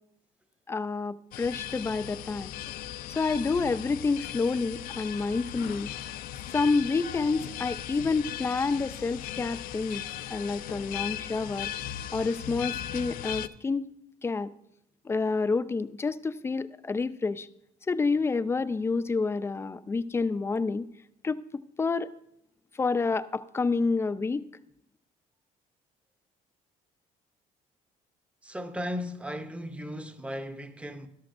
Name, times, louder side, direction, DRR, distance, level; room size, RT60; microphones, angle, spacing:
voice 1, 0.7-2.5 3.1-5.9 6.5-10.0 10.3-11.7 12.1-13.8 14.2-14.5 15.0-17.5 17.9-20.9 21.2-22.1 22.8-24.5, left 4 dB, 15° left, 0.4 m, -28 dB
sound 1, 1.3-13.5, left 12 dB, 70° left, 0.5 m, -38 dB
voice 2, 28.4-31.1, equal, 10° right, 0.7 m, -36 dB
12.0 x 12.0 x 2.6 m
cardioid pair, 115°, 15 cm